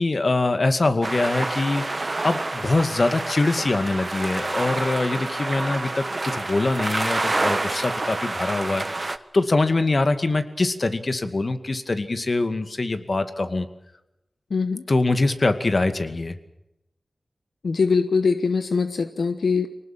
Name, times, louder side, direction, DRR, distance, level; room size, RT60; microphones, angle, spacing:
voice 1, 0.0-1.8 2.2-13.7 14.9-16.4, left 2 dB, 55° left, 9 dB, 2.2 m, -23 dB
sound 1, 1.0-9.2, right 2 dB, 45° right, 1.4 m, -28 dB
voice 2, 14.5-14.8 17.6-19.7, left 4 dB, 90° left, 9 dB, 1.0 m, -22 dB
25.0 x 19.0 x 7.5 m, 0.87 s
cardioid pair, 50°, 0 cm